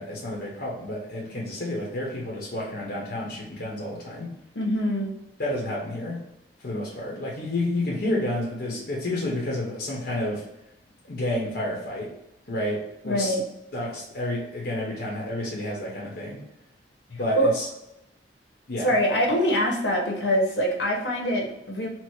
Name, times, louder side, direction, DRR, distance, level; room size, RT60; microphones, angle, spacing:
voice 1, 0.0-4.3 5.4-6.2 6.6-10.4 11.1-12.1 12.5-13.4 13.7-16.4 17.1-17.7 18.7-18.9, left 1 dB, 60° left, -4 dB, 0.9 m, -30 dB
voice 2, 4.5-5.1 13.0-13.4 17.3-17.5 18.8-21.9, equal, 80° left, 0 dB, 1.1 m, -24 dB
4.4 x 2.0 x 4.5 m, 0.88 s
head